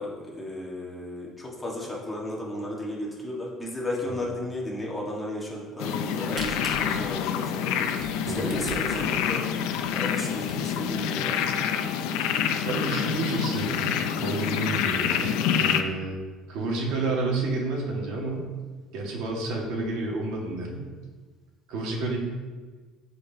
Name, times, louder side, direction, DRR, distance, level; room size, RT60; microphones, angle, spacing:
voice 1, 0.0-11.5, left 1 dB, 10° left, -4 dB, 1.6 m, -34 dB
sound 1, 5.8-15.8, left 8 dB, 90° left, 0.6 m, -27 dB
Camera, 6.0-10.9 11.5-11.6 11.8-11.9 12.3-12.4 12.8-13.1, right 1 dB, 25° right, 1.5 m, -42 dB
voice 2, 12.6-16.2 16.5-18.5 18.9-20.9 21.7-22.2, right 2 dB, 75° right, -1 dB, 1.9 m, -30 dB
13.5 x 5.1 x 2.9 m, 1.3 s
cardioid pair, 160°, 0 cm